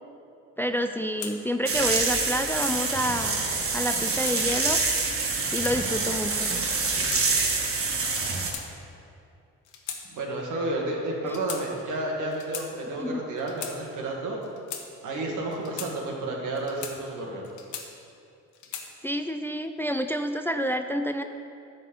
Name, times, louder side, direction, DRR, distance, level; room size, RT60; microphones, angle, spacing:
voice 1, 0.6-3.4 3.7-4.8 5.5-6.5 11.2-11.4 13.0-13.2 19.0-21.2, equal, 5° left, 7 dB, 0.4 m, -28 dB
sound 1, 1.2-1.4 2.2-2.8 3.8-4.4 5.2-5.8 6.6-7.2 8.1-9.0 9.7-10.0 10.3-10.5 11.3-11.6 12.3-12.7 13.4-13.8 14.4-14.9 15.5-15.9 16.6-17.0 17.4-18.1 18.5-18.9, left 8 dB, 80° left, 1.1 m, -38 dB
sound 2, 1.7-8.5, right 4 dB, 45° right, 1.5 m, -26 dB
voice 2, 10.1-14.4 15.0-17.4, right 2 dB, 80° right, -1 dB, 1.9 m, -31 dB
11.0 x 4.4 x 7.5 m, 2.5 s
cardioid pair, 90°, 30 cm